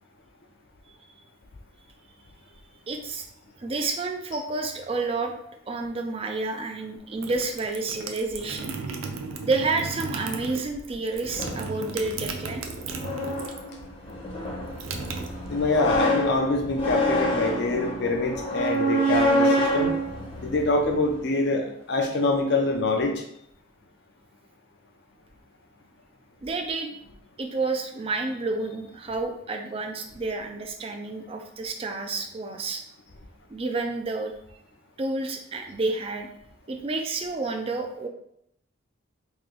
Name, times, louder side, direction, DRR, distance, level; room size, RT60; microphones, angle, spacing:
voice 1, 2.9-3.3 3.6-5.3 5.7-8.7 9.4-12.6 14.7-14.8 26.4-26.9 27.4-32.8 33.5-34.3 35.0-36.3 36.7-38.1, right 3 dB, 30° right, 4 dB, 0.4 m, -30 dB
sound 1, 7.0-13.7 14.0-15.9, right 4 dB, 85° right, 0.5 m, -35 dB
sound 2, 11.3-21.3, equal, 30° left, 0.8 m, -27 dB
voice 2, 15.5-19.9 20.4-23.1, left 2 dB, 55° left, 3 dB, 0.6 m, -25 dB
3.1 x 2.9 x 3.7 m, 0.73 s
head